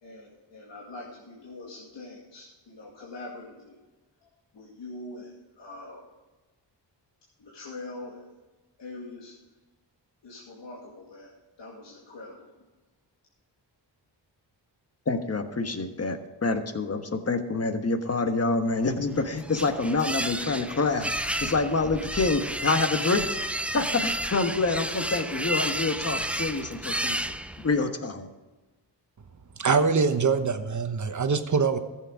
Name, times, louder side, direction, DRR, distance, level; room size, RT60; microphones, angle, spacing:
voice 1, 0.0-3.7 4.5-5.3 5.6-6.0 7.4-8.3 8.8-9.3 10.2-11.3 11.6-12.5, left 2 dB, 80° left, -4 dB, 2.3 m, -43 dB
voice 2, 15.1-23.3 23.7-27.2 27.6-28.3, left 3 dB, 35° left, 7 dB, 1.3 m, -27 dB
sound 1, 19.0-27.8, right 1 dB, 5° right, 0.5 m, -31 dB
voice 3, 29.6-31.8, right 5 dB, 45° right, 8 dB, 1.1 m, -24 dB
14.0 x 7.7 x 4.8 m, 1.2 s
cardioid pair, 85°, 43 cm